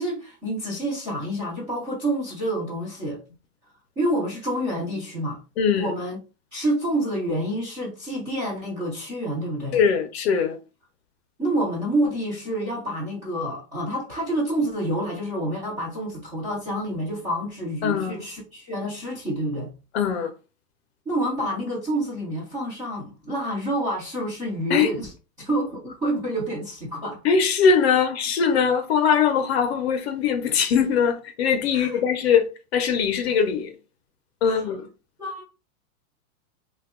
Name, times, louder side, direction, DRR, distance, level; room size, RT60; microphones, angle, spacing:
voice 1, 0.0-3.2 4.0-5.4 5.7-6.2 6.5-9.8 11.4-19.7 21.1-25.1 25.4-27.2 27.9-28.0 31.7-32.0 34.4-34.7 35.2-35.4, right 1 dB, 10° right, 0.4 m, -28 dB
voice 2, 5.6-5.9 9.7-10.6 17.8-18.2 19.9-20.3 24.7-24.9 27.2-32.5 32.7-33.7 34.4-34.9, left 6 dB, 45° left, 0.6 m, -21 dB
2.7 x 2.2 x 3.5 m
supercardioid pair, 160°, 44 cm